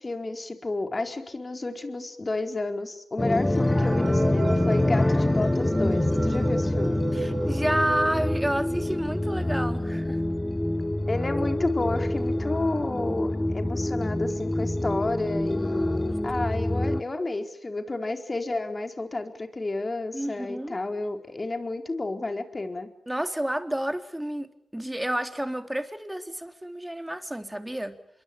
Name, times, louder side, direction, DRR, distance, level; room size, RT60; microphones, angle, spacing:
voice 1, 0.0-7.0 11.1-22.9, left 2 dB, 35° left, 6 dB, 4.5 m, -31 dB
sound 1, 3.2-17.0, left 1 dB, 15° left, 1.4 m, -26 dB
sound 2, 3.7-9.1 9.6-9.7 9.9-10.0 10.7-10.8 11.2-11.5, right 4 dB, 60° right, 3.2 m, -37 dB
voice 2, 7.1-10.2 15.9-16.4 20.1-20.8 23.1-24.5 24.7-28.0, right 1 dB, 10° right, 7 dB, 3.5 m, -30 dB
27.0 x 23.0 x 8.8 m, 0.70 s
cardioid pair, 45°, 0 cm